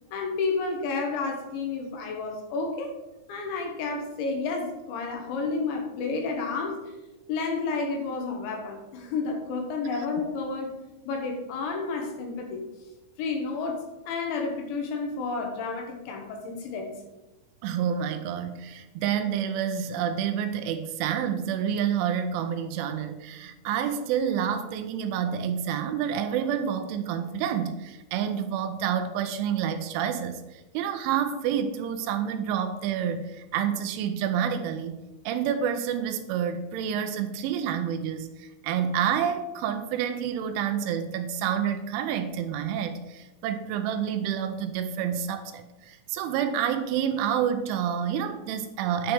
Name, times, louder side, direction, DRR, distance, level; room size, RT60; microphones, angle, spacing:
voice 1, 0.1-2.9 3.3-6.8 7.3-10.7 11.1-12.6 13.2-17.0, left 4 dB, 75° left, 3 dB, 3.4 m, -31 dB
voice 2, 17.6-49.1, right 8 dB, 85° right, 8 dB, 3.0 m, -28 dB
10.0 x 4.5 x 6.9 m, 1.0 s
omnidirectional pair, 5.7 m